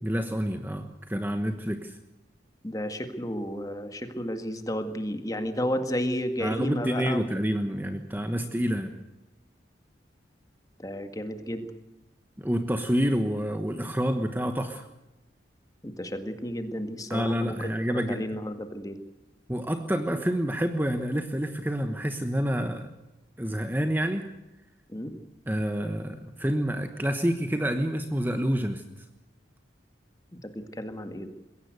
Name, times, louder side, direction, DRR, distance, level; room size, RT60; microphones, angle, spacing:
voice 1, 0.0-2.0 6.4-8.9 12.4-14.9 17.1-18.3 19.5-22.9 23.4-24.3 25.5-28.8, equal, 10° right, 7 dB, 1.2 m, -28 dB
voice 2, 2.6-7.3 10.8-11.7 15.8-19.0 24.9-25.1 30.3-31.3, equal, 20° left, 7 dB, 1.9 m, -32 dB
22.0 x 17.0 x 8.1 m, 0.95 s
head